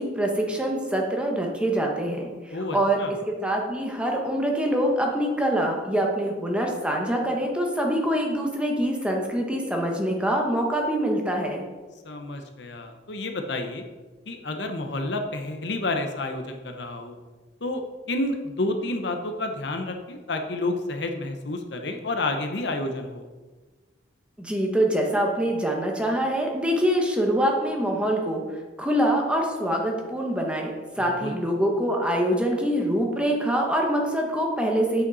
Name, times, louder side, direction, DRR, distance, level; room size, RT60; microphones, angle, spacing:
voice 1, 0.0-3.0 3.3-11.7 24.4-28.4 28.8-35.0, right 1 dB, 5° right, 0 dB, 1.2 m, -25 dB
voice 2, 2.5-3.1 12.0-13.8 14.3-17.2 17.6-23.2 31.0-31.3, left 2 dB, 65° left, 5 dB, 0.9 m, -30 dB
8.4 x 8.2 x 4.1 m, 1.3 s
head